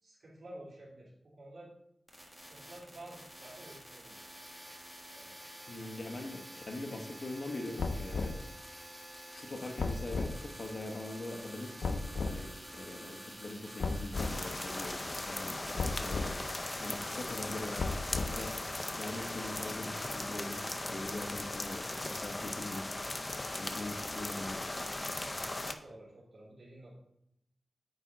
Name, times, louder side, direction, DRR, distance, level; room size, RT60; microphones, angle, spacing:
voice 1, 0.0-1.7 2.3-4.3 5.1-5.4 6.1-6.7 21.9-22.5 25.2-27.0, right 1 dB, 65° right, -6 dB, 2.9 m, -52 dB
sound 1, 2.1-17.3, equal, 5° right, 1.5 m, -49 dB
voice 2, 5.7-8.4 9.3-16.4 16.8-17.9 18.3-18.6 18.9-23.0 23.6-24.8, left 2 dB, 60° left, 3 dB, 1.0 m, -42 dB
sound 2, 7.8-8.4 9.8-10.4 11.8-12.4 13.8-14.4 15.8-16.3 17.8-18.5, left 3 dB, 90° left, 0.5 m, -34 dB
sound 3, 14.1-25.7, left 2 dB, 25° left, 0.5 m, -38 dB
9.0 x 3.7 x 4.1 m, 0.78 s
wide cardioid pair, 95°, 0 cm